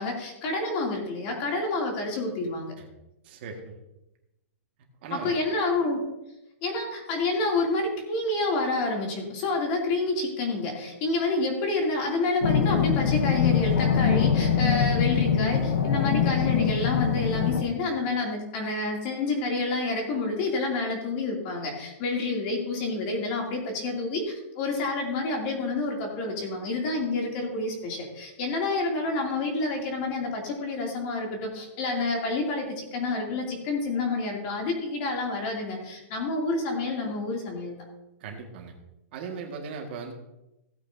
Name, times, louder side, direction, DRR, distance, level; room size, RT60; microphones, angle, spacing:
voice 1, 0.0-2.7 5.1-6.0 6.6-37.8, left 3 dB, 35° left, 0 dB, 2.8 m, -28 dB
voice 2, 3.2-3.8 5.0-5.3 38.2-38.8 39.1-40.1, right 5 dB, 45° right, 2 dB, 1.8 m, -38 dB
sound 1, 12.4-17.6, left 7 dB, 80° left, 1.3 m, -23 dB
16.5 x 8.8 x 2.7 m, 0.93 s
hypercardioid pair, 165°, 8 cm